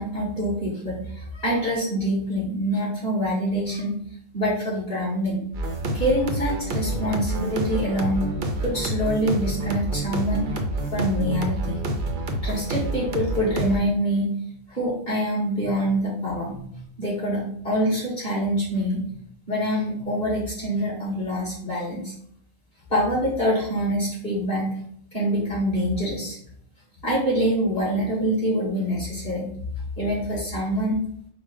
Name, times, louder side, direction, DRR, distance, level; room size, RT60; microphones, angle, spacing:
voice 1, 0.0-4.0 4.3-5.5 5.9-8.3 8.6-10.5 10.9-11.8 12.4-14.3 14.7-19.2 19.5-22.1 22.9-24.7 25.1-26.4 27.0-29.5 30.0-31.0, equal, 35° left, -6 dB, 2.1 m, -25 dB
sound 1, 5.5-13.8, right 1 dB, 50° right, 0.7 m, -28 dB
5.0 x 2.2 x 4.8 m, 0.65 s
omnidirectional pair, 1.4 m